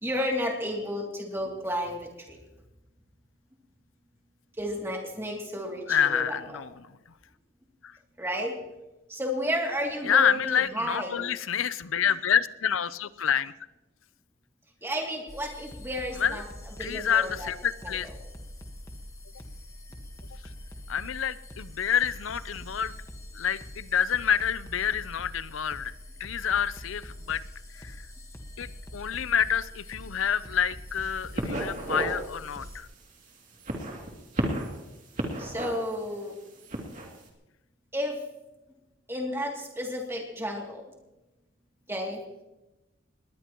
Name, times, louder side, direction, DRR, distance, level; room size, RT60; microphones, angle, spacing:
voice 1, 0.0-2.4 4.6-6.6 8.2-8.5 9.1-11.2 14.8-16.4 16.8-17.5 17.8-18.0 35.4-36.4 37.9-38.2 39.1-40.8 41.9-42.2, equal, 15° right, 0 dB, 2.7 m, -32 dB
voice 2, 5.9-7.0 7.8-8.0 10.0-13.5 16.2-16.4 16.8-18.1 20.9-22.9 23.3-25.9 26.2-27.4 27.7-28.0 28.6-32.9, left 8 dB, 90° left, 16 dB, 0.6 m, -28 dB
sound 1, 15.3-32.8, left 1 dB, 15° left, 1.4 m, -44 dB
sound 2, 30.9-31.1 31.4-32.2 32.6-32.7 33.5-34.8 35.2-36.0 36.6-37.1, right 1 dB, 40° right, 2.8 m, -32 dB
20.0 x 19.5 x 3.1 m, 1.0 s
head